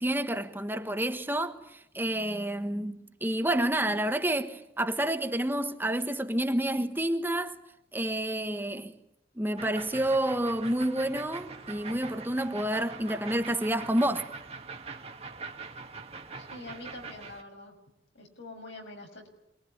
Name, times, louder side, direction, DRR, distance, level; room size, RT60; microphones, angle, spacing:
voice 1, 0.0-1.6 1.9-7.5 7.9-8.9 9.4-14.3, right 1 dB, 10° right, 1.3 m, -29 dB
sound 1, 9.6-17.4, right 4 dB, 35° right, 1.8 m, -43 dB
voice 2, 16.4-17.8 18.1-19.3, left 2 dB, 90° left, 7.1 m, -45 dB
27.5 x 21.5 x 9.9 m
head